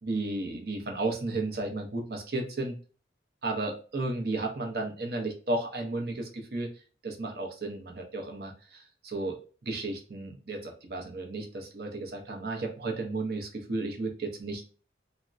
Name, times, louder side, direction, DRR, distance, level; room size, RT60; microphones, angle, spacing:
voice 1, 0.0-2.8 3.4-6.7 7.0-14.7, right 2 dB, 55° right, 2 dB, 0.7 m, -33 dB
3.5 x 2.0 x 2.4 m, 0.37 s
head